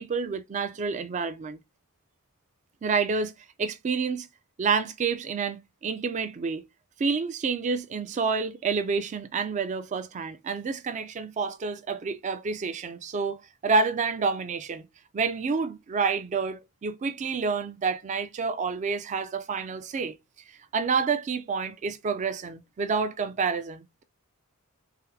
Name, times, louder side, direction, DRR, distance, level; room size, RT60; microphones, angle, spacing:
voice 1, 0.0-1.6 2.8-3.3 3.6-4.3 4.6-6.6 7.0-14.9 15.1-20.2 20.7-24.0, right 5 dB, 35° right, 0.3 m, -28 dB
4.0 x 2.0 x 2.7 m
head